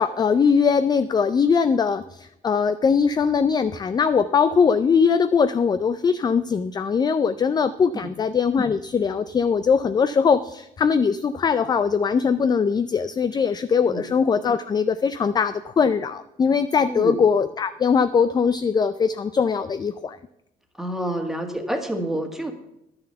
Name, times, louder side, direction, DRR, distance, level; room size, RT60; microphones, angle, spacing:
voice 1, 0.0-20.2, left 6 dB, 25° left, 12 dB, 0.4 m, -21 dB
voice 2, 16.9-17.2 20.8-22.5, right 1 dB, ahead, 4 dB, 1.7 m, -28 dB
11.0 x 6.9 x 6.8 m, 0.84 s
cardioid pair, 110°, 17 cm